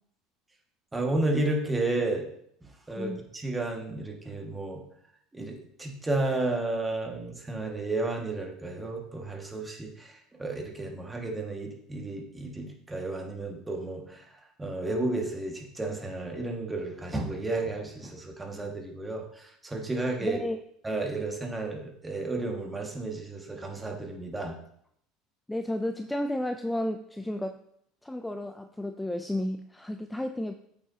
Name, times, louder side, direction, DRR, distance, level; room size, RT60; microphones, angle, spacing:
voice 1, 0.9-2.2 2.9-4.8 5.3-14.3 14.6-20.4 20.8-24.5, right 2 dB, 15° right, 1 dB, 1.9 m, -32 dB
voice 2, 20.2-20.6 25.5-27.6 28.0-30.5, left 1 dB, 10° left, 7 dB, 0.5 m, -32 dB
8.4 x 6.7 x 2.9 m, 0.71 s
hypercardioid pair, 75°, 0 cm